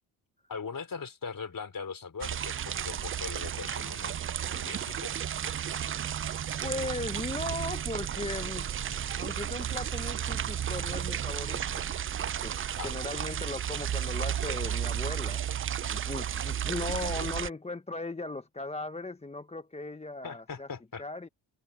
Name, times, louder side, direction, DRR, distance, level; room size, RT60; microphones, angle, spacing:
voice 1, 0.5-4.2 4.5-5.2 12.8-12.9 20.2-21.0, left 5 dB, 40° left, 4.1 m, -40 dB
sound 1, 2.2-17.5, right 9 dB, 30° right, 0.4 m, -33 dB
voice 2, 6.6-8.7 9.2-11.9 12.4-15.4 15.9-20.7 21.0-21.3, left 2 dB, 15° left, 0.8 m, -37 dB
supercardioid pair, 60°, 49 cm